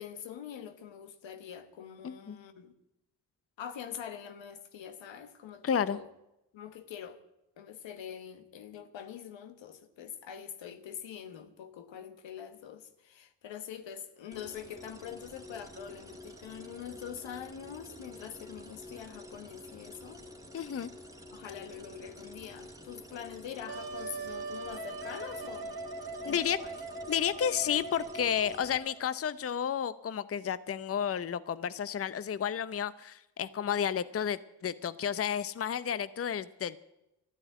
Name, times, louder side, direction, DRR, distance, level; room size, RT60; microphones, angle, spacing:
voice 1, 0.0-2.7 3.6-6.1 6.5-7.2 7.6-20.3 21.3-25.7 26.2-26.7, left 9 dB, 75° left, 1.3 m, -44 dB
voice 2, 2.0-2.4 5.6-6.0 20.5-20.9 26.2-26.6 27.1-36.8, left 8 dB, 30° left, 0.6 m, -32 dB
sound 1, 14.3-28.8, left 1 dB, 5° right, 2.2 m, -49 dB
Wind instrument woodwind instrument, 23.7-29.2, right 3 dB, 55° right, 1.5 m, -41 dB
12.5 x 9.8 x 9.0 m
supercardioid pair, 45°, 45 cm